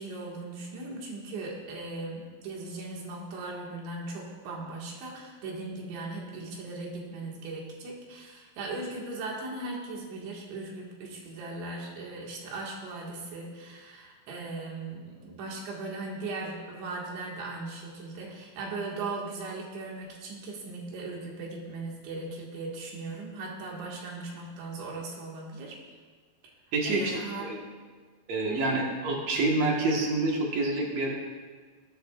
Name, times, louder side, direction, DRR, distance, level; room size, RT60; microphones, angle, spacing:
voice 1, 0.0-25.8 26.8-27.6 28.5-28.8, right 3 dB, 85° right, -2 dB, 4.3 m, -38 dB
voice 2, 26.7-27.6 28.3-31.1, right 2 dB, 60° right, -1 dB, 1.9 m, -27 dB
20.5 x 10.0 x 2.5 m, 1.5 s
omnidirectional pair, 5.1 m